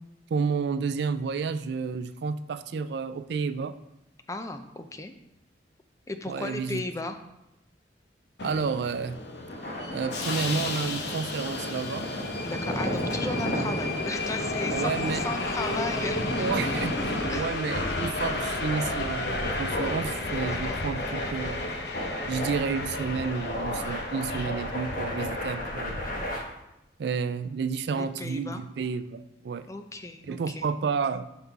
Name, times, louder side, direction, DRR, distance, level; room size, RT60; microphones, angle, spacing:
voice 1, 0.3-3.7 6.3-6.8 8.4-9.2 9.9-12.1 14.7-15.2 16.4-21.6 22.3-26.0 27.0-29.7 30.3-31.3, right 5 dB, 65° right, 13 dB, 0.3 m, -31 dB
voice 2, 4.3-5.1 6.1-7.2 12.4-16.5 17.3-17.6 20.4-20.8 28.0-28.6 29.7-30.6, left 2 dB, 15° left, 7 dB, 0.4 m, -35 dB
Subway metro underground, 8.4-26.3, left 2 dB, 65° left, 0.8 m, -33 dB
sound 1, 9.4-26.4, equal, 50° left, 1.5 m, -34 dB
5.8 x 5.5 x 4.6 m, 0.89 s
head